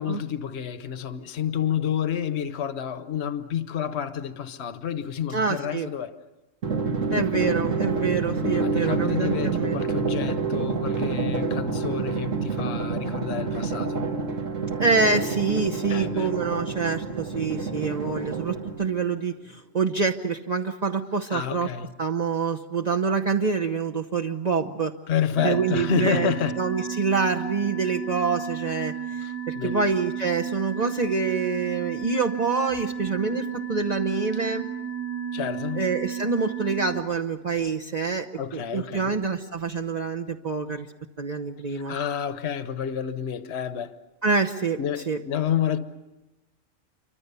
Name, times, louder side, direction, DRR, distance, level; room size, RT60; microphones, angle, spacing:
voice 1, 0.0-6.1 8.6-14.1 15.9-16.3 21.3-21.9 25.1-26.6 29.2-29.8 35.3-35.8 38.4-39.2 41.7-43.9 44.8-45.8, left 9 dB, 60° left, 1.3 m, -29 dB
voice 2, 5.3-5.9 7.1-9.8 14.8-21.7 22.0-24.9 25.4-34.6 35.7-38.3 38.5-40.9 41.2-41.9 44.2-44.8 45.1-45.2, right 4 dB, 35° right, 1.0 m, -26 dB
Drum, 6.6-19.0, right 4 dB, 75° right, 2.1 m, -28 dB
sound 1, 25.4-37.0, right 8 dB, 10° right, 1.0 m, -33 dB
27.5 x 24.5 x 6.9 m
omnidirectional pair, 1.3 m